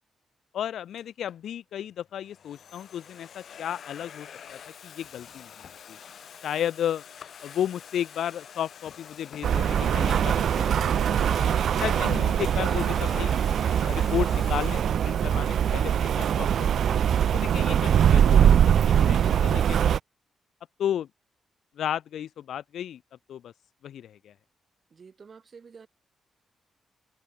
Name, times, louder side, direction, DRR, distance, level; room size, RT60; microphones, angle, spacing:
voice 1, 0.5-5.5 5.9-6.0 6.4-7.0 7.4-13.3 13.8-20.0 20.8-21.1 21.7-23.0 23.3-23.5 23.8-24.3, left 10 dB, 80° left, 2.8 m, -33 dB
Domestic sounds home sounds, 1.0-1.4 2.1-14.8, left 8 dB, 55° left, 7.0 m, -46 dB
Rain, 9.4-20.0, right 9 dB, 65° right, 0.5 m, -22 dB
voice 2, 24.9-25.9, right 5 dB, 35° right, 8.0 m, -49 dB
wide cardioid pair, 175°, 0 cm